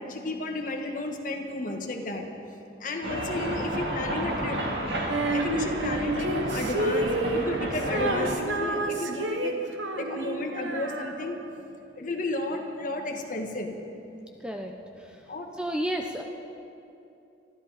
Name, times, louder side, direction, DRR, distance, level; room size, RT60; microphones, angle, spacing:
voice 1, 0.0-2.2 2.8-4.6 5.3-9.5 9.9-11.4 12.0-13.7 15.3-15.5, left 2 dB, 45° left, 3 dB, 1.5 m, -32 dB
sound 1, 3.0-8.3, right 1 dB, 60° right, 2.2 m, -31 dB
Female singing, 5.1-11.6, right 2 dB, 75° right, 1.1 m, -30 dB
voice 2, 14.4-14.7 15.6-16.2, equal, 5° right, 2 dB, 0.7 m, -30 dB
22.5 x 14.0 x 4.1 m, 2.7 s
head